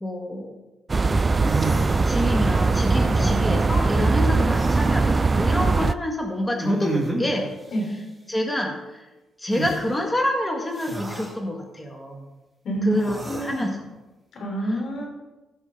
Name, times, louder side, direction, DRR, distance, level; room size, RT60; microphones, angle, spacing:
voice 1, 0.0-0.6 1.1-7.6 8.3-9.0 9.4-12.3 12.8-13.8 14.6-14.7, left 1 dB, 15° left, 1 dB, 1.6 m, -27 dB
sound 1, 0.9-5.9, right 3 dB, 25° right, 0.3 m, -20 dB
sound 2, 1.3-2.6 4.4-5.0 6.6-7.4 9.5-9.8 10.7-11.4 12.9-13.7, right 2 dB, 5° right, 2.1 m, -31 dB
voice 2, 13.2-13.7 14.3-15.1, right 1 dB, 65° left, 0 dB, 4.0 m, -27 dB
16.5 x 6.1 x 3.9 m, 1.1 s
cardioid pair, 90°, 0 cm